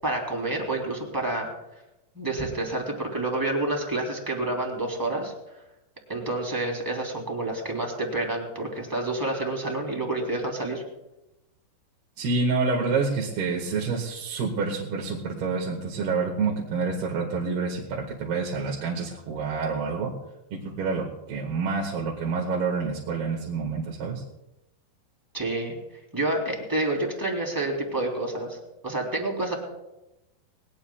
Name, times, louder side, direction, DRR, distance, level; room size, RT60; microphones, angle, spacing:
voice 1, 0.0-1.5 2.1-5.3 6.1-10.8 25.3-25.8 26.1-28.6 28.8-29.5, right 2 dB, 5° right, 0 dB, 2.4 m, -28 dB
voice 2, 12.2-20.1 20.5-24.2, right 4 dB, 65° right, -2 dB, 3.5 m, -28 dB
21.0 x 19.0 x 2.4 m, 0.95 s
omnidirectional pair, 5.1 m